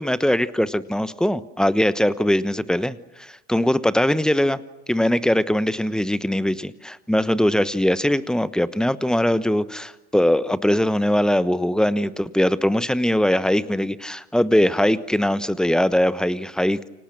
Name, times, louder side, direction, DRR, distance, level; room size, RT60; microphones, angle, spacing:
voice 1, 0.0-4.6 4.9-16.9, left 1 dB, ahead, 16 dB, 1.1 m, -21 dB
29.5 x 25.5 x 6.1 m, 1.1 s
figure-of-eight pair, 70°, 44 cm